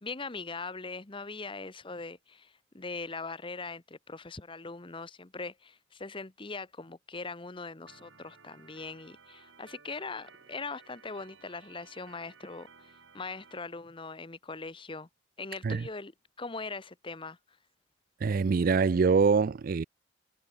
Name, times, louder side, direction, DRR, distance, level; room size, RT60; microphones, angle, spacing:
voice 1, 0.0-15.1 15.4-16.1 16.4-17.4, left 3 dB, 25° left, 1.0 m, -41 dB
Organ, 7.9-13.6, right 5 dB, 70° right, 3.4 m, -57 dB
voice 2, 18.2-19.8, right 5 dB, 45° right, 0.4 m, -24 dB
head